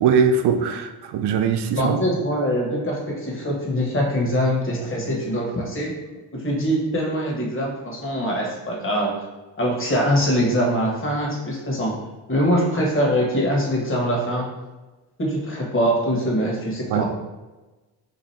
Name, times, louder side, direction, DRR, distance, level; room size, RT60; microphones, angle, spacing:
voice 1, 0.0-2.0 16.9-17.0, right 6 dB, 65° right, 8 dB, 0.5 m, -21 dB
voice 2, 1.7-5.9 6.3-9.2 9.6-11.9 12.3-14.5 15.2-17.1, equal, 30° left, -2 dB, 1.3 m, -23 dB
3.0 x 2.5 x 4.1 m, 1.1 s
supercardioid pair, 60°, 43 cm